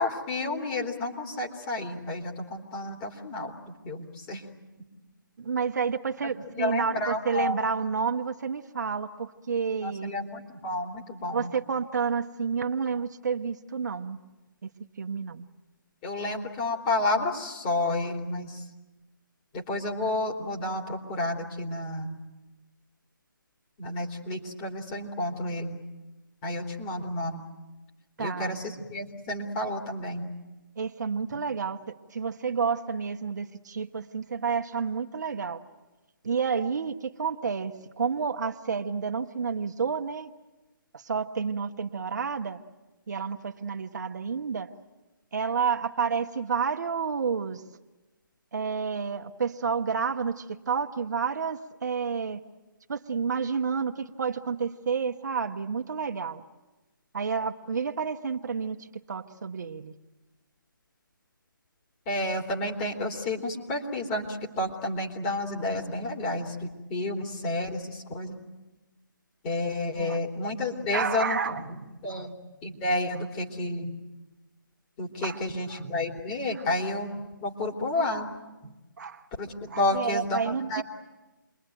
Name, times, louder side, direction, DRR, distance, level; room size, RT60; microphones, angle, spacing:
voice 1, 0.0-3.5 3.9-4.4 6.5-7.7 9.8-11.5 16.0-18.6 19.5-22.1 23.8-25.8 26.4-27.4 28.2-30.3 62.1-68.4 69.4-71.5 72.0-72.3 72.6-73.9 75.0-78.3 78.6-78.7 79.4-80.8, left 2 dB, 20° left, 1 dB, 3.1 m, -31 dB
voice 2, 5.4-10.1 11.3-14.2 14.6-14.7 15.0-15.5 28.2-28.6 30.8-31.8 32.1-35.6 36.2-40.3 40.9-42.6 43.1-44.7 45.3-47.6 48.5-52.4 52.9-56.4 57.1-58.8 59.1-59.9 69.9-70.2 70.9-71.6 72.1-72.3 75.2-75.4 75.7-75.8 76.5-76.6 78.0-78.1 79.0-79.2 79.7-80.8, right 6 dB, 55° right, 5 dB, 1.3 m, -30 dB
29.0 x 22.5 x 9.2 m, 1.1 s
figure-of-eight pair, 155°, 11 cm